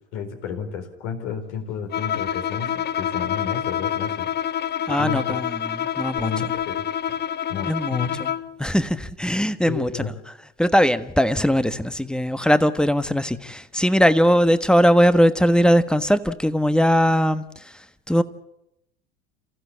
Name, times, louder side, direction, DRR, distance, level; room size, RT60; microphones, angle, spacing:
voice 1, 0.1-4.3 4.9-5.4 6.1-7.2 7.5-8.2 9.7-10.1, left 7 dB, 65° left, 4.3 m, -32 dB
Bowed string instrument, 1.9-8.6, left 9 dB, 30° left, 0.9 m, -27 dB
voice 2, 4.9-6.3 7.7-8.3 8.6-10.0 10.6-18.2, equal, 5° left, 1.3 m, -20 dB
29.0 x 15.5 x 8.5 m
hypercardioid pair, 70°, 31 cm